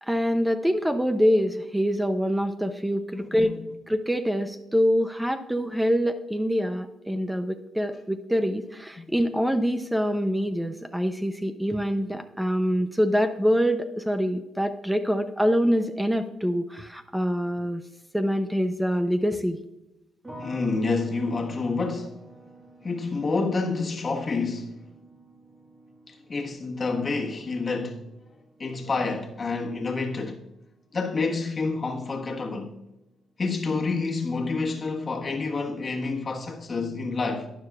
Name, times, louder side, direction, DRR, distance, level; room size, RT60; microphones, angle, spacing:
voice 1, 0.0-3.6 3.9-17.8 18.1-19.6, equal, 5° right, 0.6 m, -25 dB
voice 2, 3.2-3.7 9.0-9.1 20.4-22.2 22.8-24.9 26.1-28.1 28.6-30.4 30.9-32.8 33.4-37.5, left 3 dB, 35° left, 1.3 m, -28 dB
sound 1, 20.2-31.3 31.6-32.3, right 2 dB, 20° right, 1.6 m, -49 dB
12.0 x 9.6 x 2.4 m
cardioid pair, 90°, 0 cm